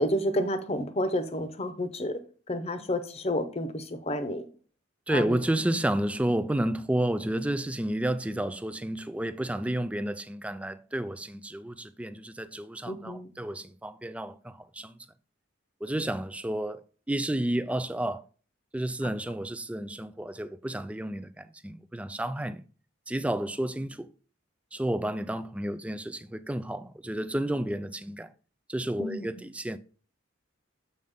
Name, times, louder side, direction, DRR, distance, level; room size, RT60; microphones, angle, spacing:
voice 1, 0.0-2.2 2.5-4.5 5.1-5.4 12.8-13.3 19.0-19.1 29.0-29.3, left 1 dB, 30° left, 0.8 m, -30 dB
voice 2, 5.1-14.9 15.8-18.2 18.7-22.6 23.1-24.1 24.7-28.3 28.7-29.8, right 1 dB, 5° right, 0.3 m, -31 dB
7.4 x 5.5 x 3.6 m
head